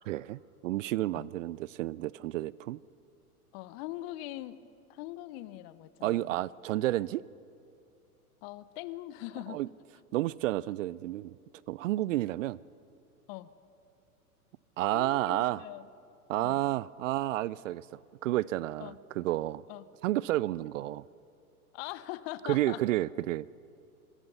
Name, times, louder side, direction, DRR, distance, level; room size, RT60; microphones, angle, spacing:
voice 1, 0.1-2.8 6.0-7.2 9.5-9.7 10.1-11.3 11.7-12.6 14.8-15.6 16.3-19.6 20.0-21.0 22.4-23.5, right 16 dB, 60° right, 22 dB, 0.5 m, -31 dB
voice 2, 3.5-4.6 4.9-6.4 8.4-9.6 13.3-13.5 14.9-15.9 16.4-16.6 18.8-19.0 19.7-19.8 21.7-22.8, left 16 dB, 45° left, 16 dB, 1.0 m, -41 dB
27.0 x 21.5 x 5.6 m, 2.5 s
hypercardioid pair, 110°, 45 cm